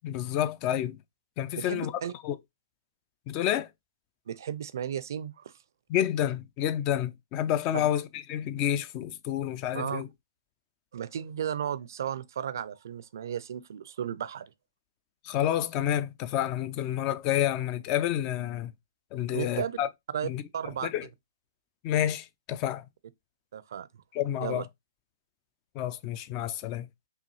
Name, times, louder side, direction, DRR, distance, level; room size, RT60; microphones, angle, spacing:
voice 1, 0.0-1.0 1.4-1.9 2.2-2.3 3.3-3.7 5.9-10.1 15.2-18.7 19.1-19.9 20.2-20.4 20.8-21.1 21.8-22.8 24.1-24.6 25.8-26.9, left 11 dB, 30° left, 0.4 m, -29 dB
voice 2, 1.5-2.1 4.3-5.5 7.7-7.9 9.7-10.0 10.9-14.5 19.3-19.8 20.1-20.9 23.5-23.9 24.4-24.7, right 9 dB, 60° right, 0.4 m, -34 dB
5.5 x 2.3 x 3.0 m
figure-of-eight pair, 130°, 2 cm